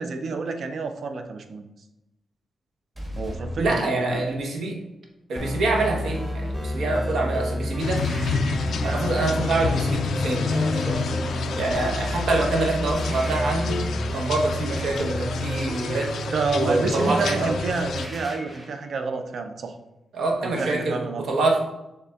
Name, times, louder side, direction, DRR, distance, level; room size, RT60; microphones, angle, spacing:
voice 1, 0.0-1.7 3.2-4.2 16.3-19.7 20.4-21.3, right 4 dB, 55° right, 6 dB, 0.4 m, -29 dB
sound 1, 3.0-4.6 8.0-9.1 13.0-14.1 18.0-18.9, equal, 30° right, 1.3 m, -39 dB
voice 2, 3.6-4.8 5.3-8.1 8.8-11.0 11.6-13.8 14.1-16.1 16.5-17.5 20.1-21.6, right 2 dB, 80° right, 1 dB, 0.8 m, -25 dB
sound 2, 5.4-18.1, equal, 5° left, 0.6 m, -30 dB
sound 3, 7.8-18.1, left 5 dB, 75° left, 0.3 m, -30 dB
6.5 x 3.4 x 2.3 m, 0.94 s
wide cardioid pair, 155°, 0 cm